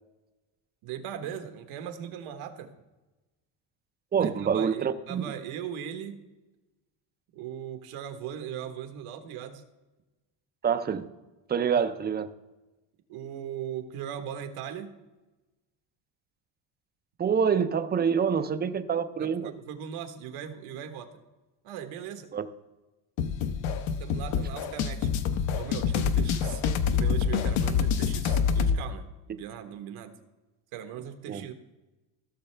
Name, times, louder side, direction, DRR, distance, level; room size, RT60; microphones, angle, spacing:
voice 1, 0.8-2.7 4.2-6.2 7.3-9.6 11.7-11.8 13.1-15.0 19.2-21.1 21.6-22.3 24.0-25.1 25.5-26.6 26.9-30.2 30.7-31.5, right 9 dB, 80° right, 7 dB, 1.3 m, -39 dB
voice 2, 4.1-5.2 10.6-11.0 11.5-12.3 17.2-19.5 22.3-22.4 31.3-31.5, right 7 dB, 20° right, 11 dB, 0.4 m, -26 dB
sound 1, 23.2-28.8, left 6 dB, 65° left, 0.9 m, -26 dB
16.0 x 6.5 x 3.3 m, 1.1 s
cardioid pair, 125°, 50 cm